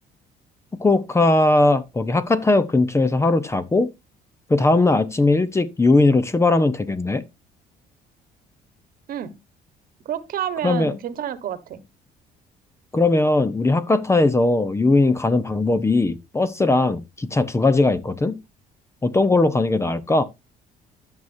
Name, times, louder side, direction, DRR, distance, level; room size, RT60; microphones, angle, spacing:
voice 1, 0.8-3.9 4.5-7.2 10.6-10.9 12.9-18.4 19.0-20.2, left 2 dB, 15° left, 0.8 m, -19 dB
voice 2, 10.0-11.8, right 9 dB, 60° right, 1.3 m, -29 dB
13.0 x 6.6 x 2.6 m
cardioid pair, 110°, 17 cm